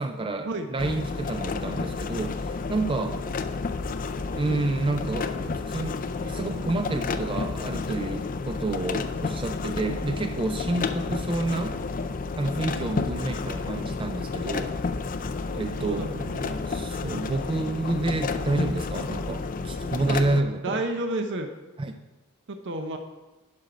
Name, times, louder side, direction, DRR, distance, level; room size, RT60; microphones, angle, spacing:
voice 1, 0.0-3.2 4.3-11.8 12.4-14.7 15.5-16.1 16.7-20.8 21.8-21.9, right 2 dB, 25° right, 6 dB, 0.4 m, -29 dB
sound 1, 0.8-20.4, left 4 dB, 40° left, 0.5 m, -31 dB
voice 2, 15.8-16.6 20.1-20.2 20.6-21.5 22.5-23.0, right 2 dB, 55° right, 6 dB, 0.7 m, -31 dB
10.5 x 6.1 x 5.0 m, 1.1 s
head